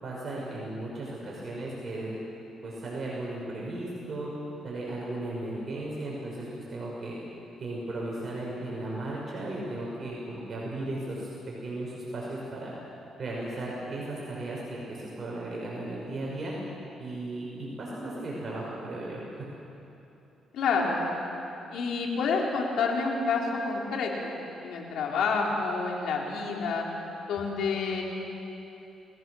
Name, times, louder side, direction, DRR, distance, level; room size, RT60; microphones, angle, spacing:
voice 1, 0.0-2.2 2.6-4.3 4.6-7.2 7.6-11.3 11.6-12.7 13.2-16.5 17.0-19.5, right 2 dB, 45° right, -4 dB, 5.8 m, -36 dB
voice 2, 20.5-21.1 21.7-26.9 27.3-28.0, left 4 dB, 80° left, -1 dB, 4.1 m, -28 dB
29.0 x 20.0 x 6.5 m, 2.9 s
cardioid pair, 90°, 0 cm